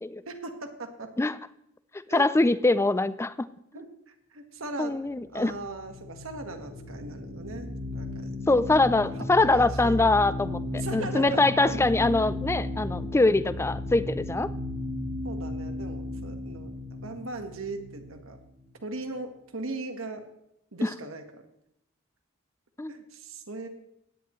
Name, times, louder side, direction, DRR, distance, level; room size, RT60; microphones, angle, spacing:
voice 1, 0.3-1.1 2.1-2.3 3.7-3.9 4.3-5.0 5.3-8.6 9.4-10.0 10.7-11.8 15.2-18.4 18.8-20.2 20.7-21.2 22.9-23.7, right 2 dB, 70° right, 5 dB, 1.6 m, -38 dB
voice 2, 2.1-3.5 4.8-5.5 8.5-14.5 20.8-20.9 22.8-22.9, left 2 dB, 10° left, 15 dB, 0.4 m, -23 dB
sound 1, 5.4-18.6, left 2 dB, 45° right, 2.3 m, -35 dB
16.5 x 10.0 x 3.2 m, 0.80 s
head